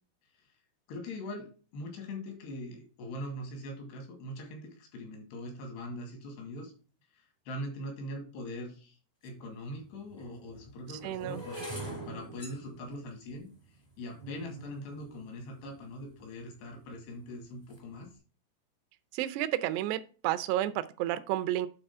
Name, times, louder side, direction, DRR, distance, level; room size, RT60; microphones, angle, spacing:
voice 1, 0.9-6.7 7.1-9.0 9.2-11.6 12.1-13.5 14.0-18.1, left 1 dB, 85° left, 2 dB, 4.4 m, -42 dB
sound 1, 9.2-9.3 10.1-16.2 16.9-17.3 17.5-17.9, right 1 dB, 35° left, 0.4 m, -45 dB
voice 2, 11.0-11.7 19.1-21.7, right 13 dB, 90° right, 11 dB, 2.8 m, -31 dB
9.1 x 4.1 x 5.4 m, 0.36 s
omnidirectional pair, 4.7 m